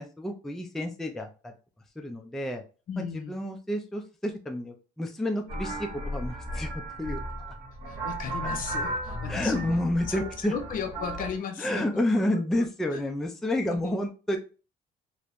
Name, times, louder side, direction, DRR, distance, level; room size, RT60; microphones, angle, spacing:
voice 1, 0.0-1.5 2.0-2.6 3.0-6.7 7.0-7.2 9.3-10.5 11.6-14.4, left 1 dB, ahead, 0.3 m, -30 dB
voice 2, 2.9-3.4 7.9-9.8 10.1-12.0 12.3-12.4 12.9-13.0 13.7-14.0, left 6 dB, 55° left, 0.6 m, -35 dB
sound 1, 5.5-11.4, right 1 dB, 90° right, 1.1 m, -35 dB
3.0 x 2.0 x 2.4 m
cardioid pair, 110°, 17 cm